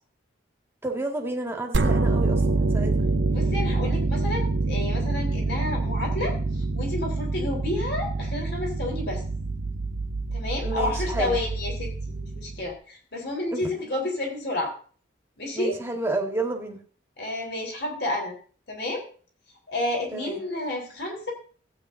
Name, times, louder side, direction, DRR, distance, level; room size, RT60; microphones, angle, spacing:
voice 1, 0.8-3.1 10.6-11.4 13.5-13.7 15.5-16.8 20.1-20.4, right 2 dB, 10° right, 1 dB, 1.9 m, -30 dB
sound 1, 1.7-12.7, right 3 dB, 65° right, 0.8 m, -26 dB
voice 2, 3.3-9.2 10.3-14.7 15.4-15.7 17.2-18.4 18.7-19.1 19.7-21.3, left 2 dB, 55° left, 1 dB, 3.9 m, -30 dB
15.5 x 8.9 x 2.7 m, 0.41 s
head